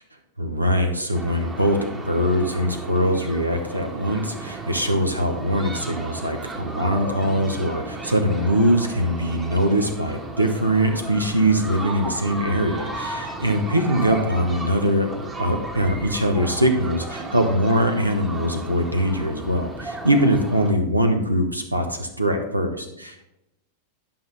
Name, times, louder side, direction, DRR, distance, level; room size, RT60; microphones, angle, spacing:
voice 1, 0.4-15.1 15.4-23.2, equal, 85° right, 6 dB, 1.0 m, -22 dB
sound 1, 1.1-20.7, right 2 dB, 15° right, 1.3 m, -34 dB
11.0 x 5.8 x 4.0 m, 0.87 s
figure-of-eight pair, 90°, 0 cm